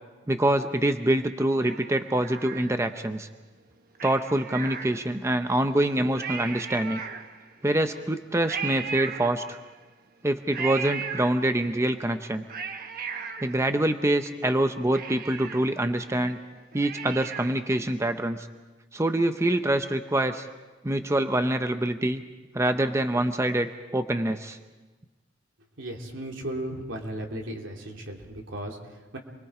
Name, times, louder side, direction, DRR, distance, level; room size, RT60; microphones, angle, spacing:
voice 1, 0.3-3.3 4.0-7.0 7.6-9.6 10.2-12.4 13.4-16.4 16.7-18.5 18.9-20.5 20.8-22.2 22.5-24.6, right 1 dB, 15° right, 8 dB, 0.6 m, -25 dB
Cat, 1.6-3.1 3.9-5.4 5.8-5.9 6.1-7.6 8.5-9.8 10.5-11.8 12.3-14.3 14.6-14.7 14.9-17.7 18.1-18.2, right 6 dB, 50° right, 1.1 m, -37 dB
voice 2, 25.8-29.2, right 1 dB, 80° right, 1 dB, 3.0 m, -36 dB
28.0 x 22.0 x 4.9 m, 1.2 s
head